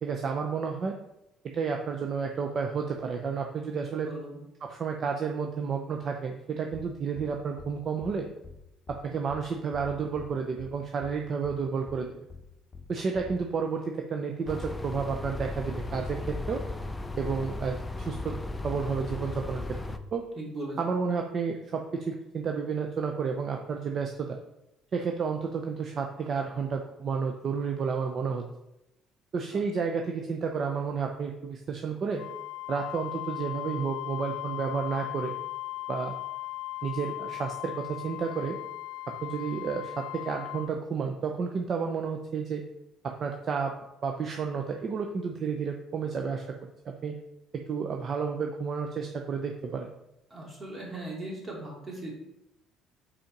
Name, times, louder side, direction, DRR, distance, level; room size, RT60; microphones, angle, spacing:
voice 1, 0.0-1.0 1.4-4.1 4.6-8.3 8.9-12.2 12.9-16.6 17.2-18.4 18.6-19.6 20.1-20.2 20.8-24.4 24.9-28.4 29.3-32.2 32.7-35.3 35.9-36.1 36.8-38.6 39.2-42.6 43.0-43.7 44.0-46.4 46.8-47.2 47.5-49.9, right 5 dB, 45° right, 3 dB, 0.7 m, -31 dB
voice 2, 3.7-4.4 20.4-20.8 29.5-29.6 50.3-52.1, right 1 dB, 25° right, -2 dB, 2.6 m, -39 dB
sound 1, 6.7-6.9 7.1-7.3 7.6-7.7 8.0-8.1 8.4-8.6 8.9-9.0 9.3-9.4 9.7-10.3 10.6-10.7 11.0-11.1 11.4-11.6 11.9-12.0 12.3-12.4 12.7-12.9 13.1-13.4, left 4 dB, 30° left, 0.9 m, -45 dB
sound 2, 14.5-20.0, left 2 dB, 10° left, 0.6 m, -36 dB
Wind instrument woodwind instrument, 32.2-40.7, left 17 dB, 90° left, 0.5 m, -38 dB
5.3 x 4.3 x 5.2 m, 0.91 s
cardioid pair, 100°, 0 cm